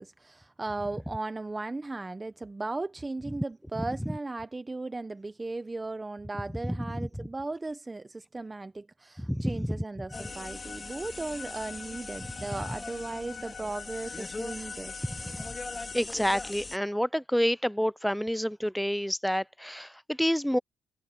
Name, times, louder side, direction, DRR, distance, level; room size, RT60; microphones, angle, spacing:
voice 1, 0.0-14.9, right 2 dB, 20° right, 1.1 m, -37 dB
voice 2, 9.2-9.8 15.9-20.6, equal, ahead, 0.5 m, -28 dB
sound 1, 10.1-16.0, left 7 dB, 50° left, 0.8 m, -45 dB
sound 2, 10.1-16.8, left 3 dB, 25° left, 3.7 m, -41 dB
cardioid pair, 90°, 0 cm